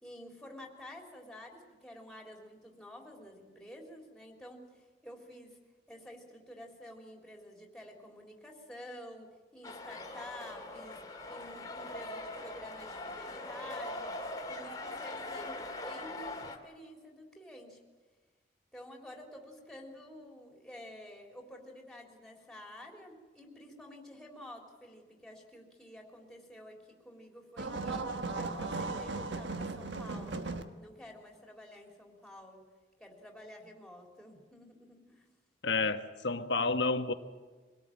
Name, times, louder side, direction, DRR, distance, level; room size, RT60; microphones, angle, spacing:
voice 1, 0.0-5.6 5.9-11.0 11.3-14.1 14.5-17.8 18.7-30.5 30.8-32.6 33.0-35.3, left 1 dB, ahead, 1 dB, 3.6 m, -50 dB
sound 1, 9.6-16.6, left 2 dB, 20° left, 2.1 m, -41 dB
sound 2, 27.6-30.6, right 3 dB, 85° right, 1.4 m, -36 dB
voice 2, 35.6-37.1, left 3 dB, 80° left, 9 dB, 1.3 m, -30 dB
24.5 x 18.0 x 8.9 m, 1.3 s
head